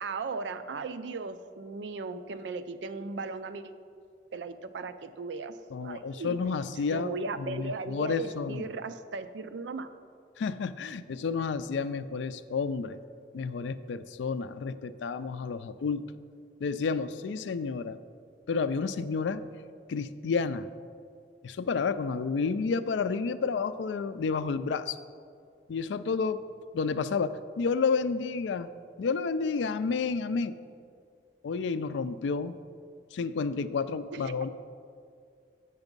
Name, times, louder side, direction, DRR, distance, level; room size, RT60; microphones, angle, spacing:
voice 1, 0.0-3.7 4.3-6.4 6.9-9.9 34.1-34.3, right 4 dB, 85° right, 11 dB, 0.4 m, -37 dB
voice 2, 5.7-7.1 7.4-8.6 10.4-13.0 13.3-16.0 16.6-18.0 18.5-19.4 19.9-20.7 21.4-25.0 25.7-26.4 26.7-28.7 29.0-30.6 31.4-32.5 33.1-34.5, left 5 dB, 85° left, 13 dB, 0.4 m, -30 dB
8.1 x 5.9 x 5.3 m, 2.3 s
head